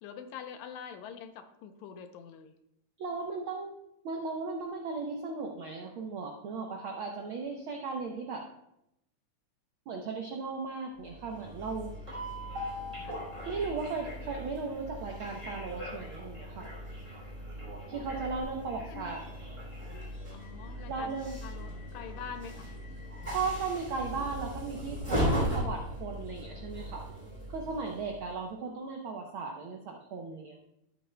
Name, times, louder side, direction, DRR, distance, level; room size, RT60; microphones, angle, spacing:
voice 1, 0.0-2.5 13.0-13.2 18.9-19.2 20.3-21.2 21.4-22.7, left 7 dB, 80° left, 8 dB, 2.1 m, -45 dB
voice 2, 3.0-3.8 4.0-8.4 9.9-11.9 13.5-16.7 17.9-19.2 20.9-21.4 23.3-27.0 27.5-30.6, right 4 dB, 80° right, 2 dB, 1.2 m, -36 dB
Train, 11.1-28.3, equal, 15° right, 2.5 m, -38 dB
12.5 x 8.5 x 2.2 m, 0.81 s
omnidirectional pair, 3.3 m